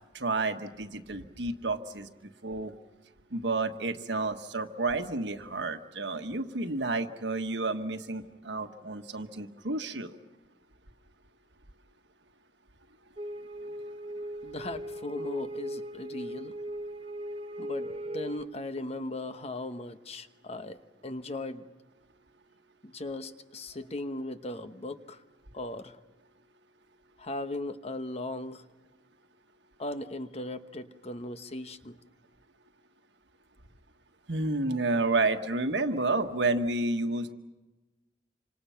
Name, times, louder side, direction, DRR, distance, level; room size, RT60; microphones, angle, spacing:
voice 1, 0.1-2.1 2.4-2.7 3.3-10.1 34.3-37.3, right 2 dB, 75° right, 7 dB, 1.4 m, -30 dB
sound 1, 13.2-18.5, right 1 dB, 35° right, 0.9 m, -38 dB
voice 2, 14.4-16.5 17.6-21.6 22.8-25.2 25.5-26.0 27.2-28.6 29.8-32.0, left 2 dB, 35° left, 9 dB, 1.0 m, -38 dB
27.5 x 26.0 x 5.8 m, 1.1 s
head